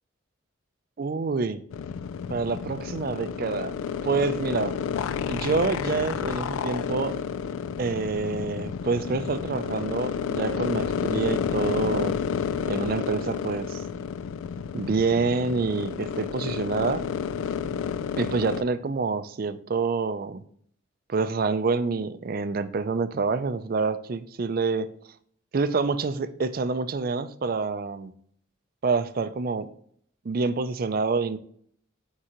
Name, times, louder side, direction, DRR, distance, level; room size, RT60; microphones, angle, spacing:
voice 1, 1.0-1.6 2.3-3.7 4.0-4.8 5.3-7.2 7.8-12.2 12.7-13.8 14.7-17.1 18.2-20.4 21.1-24.9 25.5-28.1 28.8-29.7 30.2-31.4, right 4 dB, 45° right, 0.4 m, -27 dB
sound 1, 1.7-18.6, left 7 dB, 85° left, 0.3 m, -30 dB
9.2 x 3.7 x 2.9 m
head